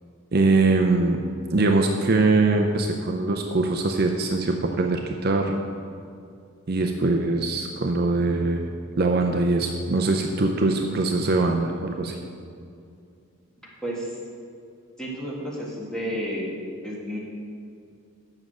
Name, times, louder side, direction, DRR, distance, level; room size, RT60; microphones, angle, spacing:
voice 1, 0.3-1.2 1.5-5.6 6.7-8.6 9.0-12.2, right 3 dB, 45° right, 3 dB, 0.5 m, -22 dB
voice 2, 13.8-14.2 15.0-16.5 16.8-17.2, equal, 5° left, -6 dB, 1.8 m, -31 dB
7.4 x 6.2 x 7.7 m, 2.4 s
head